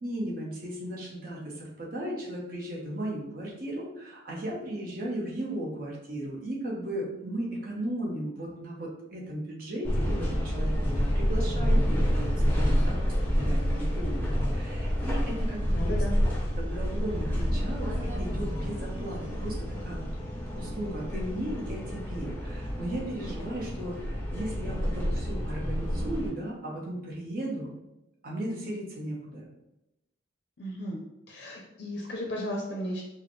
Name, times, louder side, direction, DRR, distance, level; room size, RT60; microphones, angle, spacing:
voice 1, 0.0-16.0 16.6-20.1 20.5-27.7 28.2-29.5, right 1 dB, 50° right, -4 dB, 1.0 m, -36 dB
sound 1, 9.8-26.3, equal, 10° left, 0.6 m, -28 dB
voice 2, 15.7-16.1 30.6-31.0 31.3-33.0, equal, 55° left, -1 dB, 0.5 m, -34 dB
4.8 x 2.1 x 3.1 m, 0.91 s
head